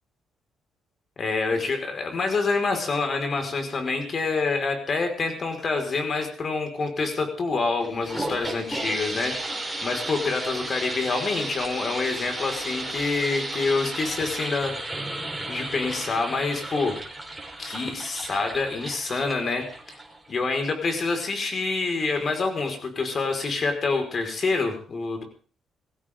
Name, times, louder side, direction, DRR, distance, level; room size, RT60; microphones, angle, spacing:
voice 1, 1.2-9.4 9.8-14.8 15.5-17.0 17.6-19.7 20.3-25.2, left 3 dB, 45° left, 5 dB, 5.2 m, -27 dB
sound 1, 7.8-20.3, right 2 dB, 5° right, 4.6 m, -34 dB
21.5 x 16.0 x 3.8 m, 0.40 s
cardioid pair, 90°, 0 cm